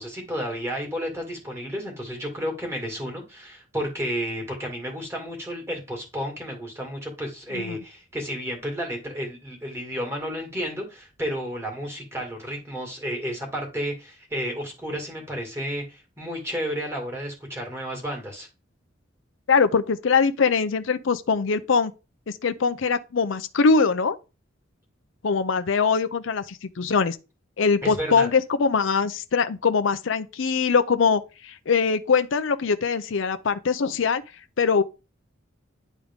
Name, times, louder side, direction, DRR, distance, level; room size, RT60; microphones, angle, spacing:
voice 1, 0.0-18.5 27.8-28.3, equal, 15° right, 2.0 m, -32 dB
voice 2, 19.5-21.9 22.3-24.2 25.2-27.2 27.6-34.2 34.6-34.8, left 5 dB, 80° left, 0.5 m, -22 dB
10.5 x 3.5 x 3.6 m
head